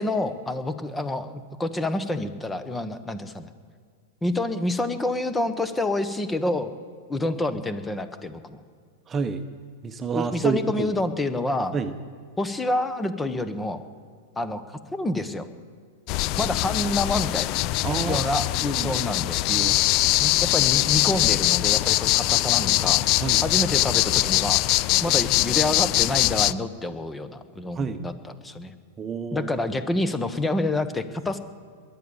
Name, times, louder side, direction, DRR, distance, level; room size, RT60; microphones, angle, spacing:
voice 1, 0.0-3.5 4.2-6.7 7.1-8.6 10.1-11.7 12.4-13.8 14.4-15.5 16.4-17.5 18.0-19.4 20.2-23.0 23.4-24.6 25.0-28.1 28.4-28.7 29.3-31.4, left 2 dB, 10° left, 11 dB, 1.2 m, -28 dB
voice 2, 9.1-9.4 9.8-10.9 11.7-11.9 17.8-18.3 18.8-19.0 19.5-19.8 23.2-23.4 27.7-28.0 29.0-29.5, right 5 dB, 25° right, 9 dB, 1.0 m, -28 dB
sound 1, 16.1-26.5, left 18 dB, 45° left, 0.4 m, -22 dB
21.5 x 8.9 x 7.1 m, 2.1 s
hypercardioid pair, 110°, 0 cm